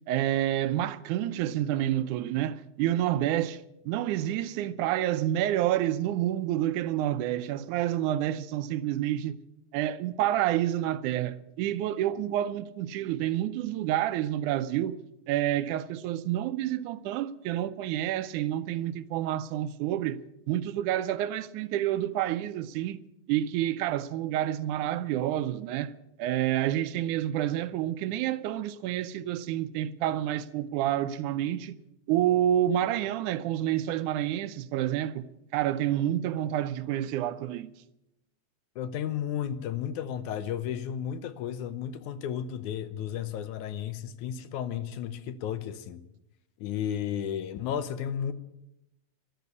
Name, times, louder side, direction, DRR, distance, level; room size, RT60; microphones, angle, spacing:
voice 1, 0.1-9.4 9.7-15.0 15.3-20.2 20.5-23.0 23.3-25.9 26.2-31.7 32.1-35.3 35.5-37.7, right 12 dB, 85° right, 2.2 m, -28 dB
voice 2, 38.8-46.0 46.6-48.3, left 9 dB, 80° left, 2.3 m, -33 dB
13.5 x 12.5 x 8.3 m
omnidirectional pair, 3.5 m